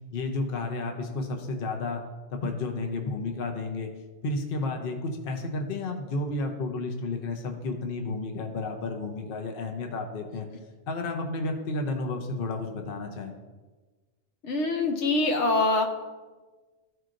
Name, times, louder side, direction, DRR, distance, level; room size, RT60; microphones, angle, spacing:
voice 1, 0.1-2.0 2.3-3.9 4.2-10.5 10.9-13.3, left 3 dB, 55° left, 3 dB, 0.9 m, -32 dB
voice 2, 14.4-15.9, left 2 dB, 75° left, 3 dB, 1.1 m, -24 dB
13.5 x 4.6 x 2.5 m, 1.3 s
omnidirectional pair, 1.2 m